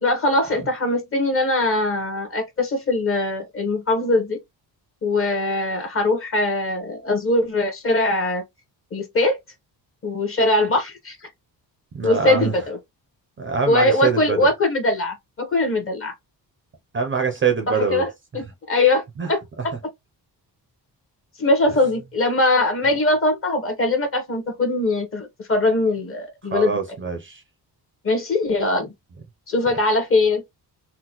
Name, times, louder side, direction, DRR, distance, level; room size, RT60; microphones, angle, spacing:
voice 1, 0.0-4.4 5.0-8.4 8.9-9.4 10.0-11.2 12.0-12.8 13.7-16.1 17.7-18.1 18.3-19.0 19.3-19.7 21.4-26.8 28.0-28.9 29.5-30.4, left 2 dB, 35° left, 0.9 m, -21 dB
voice 2, 11.9-12.5 13.4-14.5 16.9-18.0 19.2-19.3 26.5-27.4, right 5 dB, 30° right, 0.5 m, -24 dB
3.8 x 2.1 x 2.9 m
wide cardioid pair, 165°, 40 cm